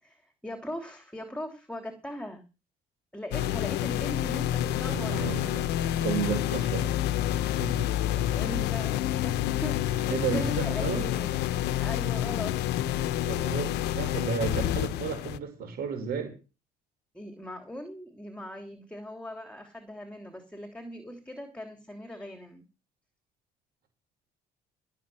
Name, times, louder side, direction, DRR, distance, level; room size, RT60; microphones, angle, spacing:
voice 1, 0.0-2.4 3.1-5.5 8.2-12.5 17.1-22.6, left 1 dB, 5° left, 6 dB, 3.0 m, -40 dB
sound 1, 3.3-15.4, left 12 dB, 85° left, 1.0 m, -28 dB
voice 2, 4.8-7.3 7.6-7.9 10.1-11.1 13.2-16.4, right 6 dB, 65° right, 5 dB, 5.3 m, -33 dB
16.0 x 6.6 x 7.8 m, 0.32 s
cardioid pair, 110°, 17 cm